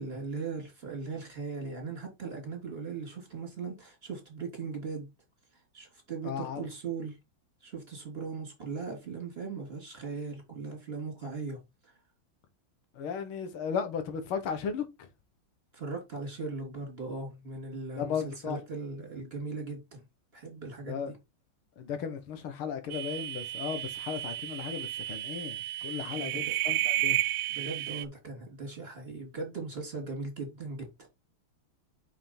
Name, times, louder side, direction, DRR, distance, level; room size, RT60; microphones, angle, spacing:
voice 1, 0.0-5.1 5.7-7.2 7.6-11.6 15.7-20.0 20.3-21.2 26.1-26.8 27.5-30.9, right 4 dB, 25° right, 3.2 m, -39 dB
voice 2, 6.2-6.7 13.0-15.1 17.9-18.6 20.9-21.1 21.8-27.2, left 7 dB, 85° left, 2.1 m, -35 dB
sound 1, 22.9-28.0, right 16 dB, 70° right, 1.1 m, -32 dB
5.6 x 5.6 x 4.4 m
omnidirectional pair, 2.3 m